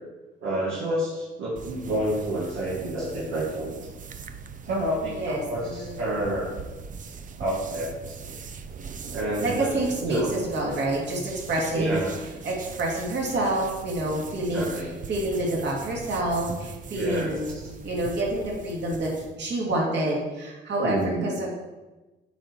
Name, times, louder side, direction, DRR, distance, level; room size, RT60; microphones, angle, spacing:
voice 1, 0.4-3.7 4.6-6.5 7.4-8.4 9.1-9.8 10.0-10.3 11.7-12.1 14.5-14.9 16.9-17.3 20.8-21.3, right 1 dB, 85° right, -5 dB, 1.6 m, -29 dB
sound 1, 1.6-19.4, right 5 dB, 40° right, 0.6 m, -41 dB
voice 2, 5.0-6.0 9.4-12.0 12.4-14.7 15.1-17.5 17.8-21.5, right 1 dB, 60° right, -3 dB, 2.4 m, -28 dB
8.8 x 4.5 x 4.4 m, 1.2 s
cardioid pair, 90°, 20 cm